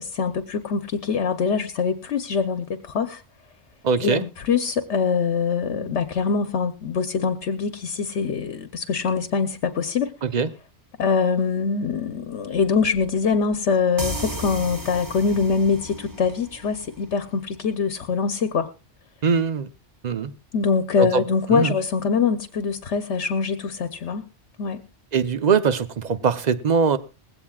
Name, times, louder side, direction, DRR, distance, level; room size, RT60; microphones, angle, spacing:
voice 1, 0.0-3.2 4.0-10.1 11.0-18.7 20.5-24.3 24.6-24.8, left 5 dB, 70° left, 1.1 m, -24 dB
voice 2, 3.8-4.2 10.2-10.5 19.2-19.7 20.0-20.3 21.0-21.2 21.5-21.8 25.1-27.0, right 5 dB, 40° right, 0.8 m, -21 dB
sound 1, 14.0-17.5, right 1 dB, 20° right, 1.1 m, -34 dB
20.0 x 16.0 x 2.4 m
omnidirectional pair, 1.2 m